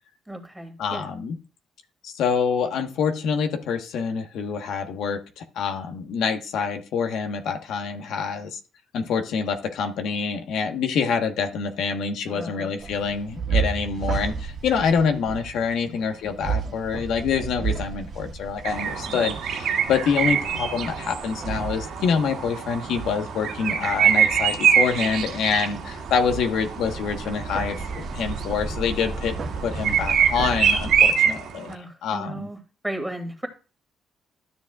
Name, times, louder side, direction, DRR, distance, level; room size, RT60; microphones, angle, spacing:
voice 1, 0.3-1.1 12.3-12.7 16.2-16.3 19.1-19.4 31.7-33.5, right 1 dB, 5° right, 5 dB, 2.4 m, -35 dB
voice 2, 0.8-1.3 2.0-8.6 8.9-29.4 29.6-31.7 32.0-32.5, left 6 dB, 80° left, 6 dB, 1.2 m, -26 dB
sound 1, 12.8-31.1, right 5 dB, 55° right, 1.5 m, -33 dB
sound 2, 18.6-31.7, right 8 dB, 80° right, 1.8 m, -25 dB
12.5 x 7.1 x 2.4 m, 0.33 s
cardioid pair, 90°, 0 cm